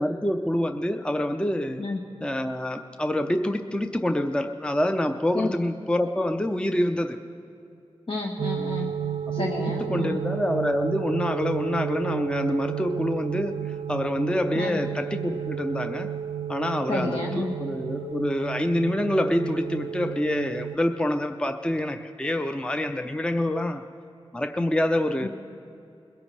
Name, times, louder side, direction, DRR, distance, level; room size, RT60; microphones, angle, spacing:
voice 1, 0.0-1.8 2.2-7.2 9.4-16.1 16.5-23.9 24.3-25.3, left 1 dB, 10° left, 7 dB, 0.6 m, -26 dB
voice 2, 8.1-8.9 9.3-10.2 14.5-14.8 16.9-17.6 25.2-25.3, left 3 dB, 60° left, -1 dB, 1.2 m, -30 dB
sound 1, 8.4-20.8, right 9 dB, 65° right, 0.4 m, -32 dB
21.5 x 16.5 x 3.3 m, 2.7 s
wide cardioid pair, 70°, 10 cm